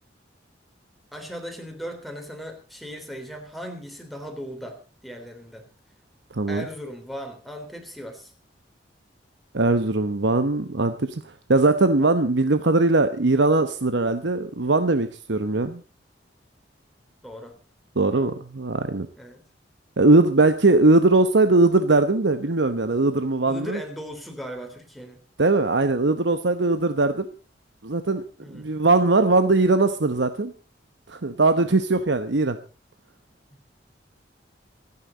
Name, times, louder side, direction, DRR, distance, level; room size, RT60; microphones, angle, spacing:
voice 1, 1.1-5.7 6.5-8.3 17.2-17.6 18.1-18.3 19.2-19.4 23.5-25.2 28.4-28.8, equal, ahead, 3 dB, 3.5 m, -38 dB
voice 2, 6.3-6.6 9.5-11.2 11.5-15.8 18.0-19.1 20.0-23.8 25.4-27.2 27.8-28.2 28.5-30.5 31.1-32.6, right 2 dB, 75° right, 9 dB, 1.0 m, -20 dB
26.0 x 9.8 x 4.1 m, 0.35 s
head